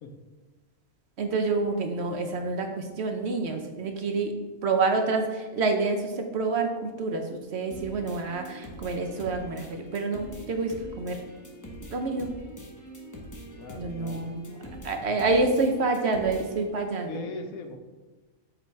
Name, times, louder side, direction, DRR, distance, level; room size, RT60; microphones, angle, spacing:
voice 1, 1.2-4.3 4.6-11.2 11.9-12.3 13.8-17.2, right 3 dB, 55° right, 4 dB, 0.9 m, -28 dB
sound 1, 7.7-16.7, equal, 15° left, 0.7 m, -43 dB
voice 2, 13.6-14.3 17.1-17.8, left 3 dB, 85° left, 5 dB, 1.2 m, -40 dB
7.0 x 3.9 x 4.5 m, 1.3 s
omnidirectional pair, 1.4 m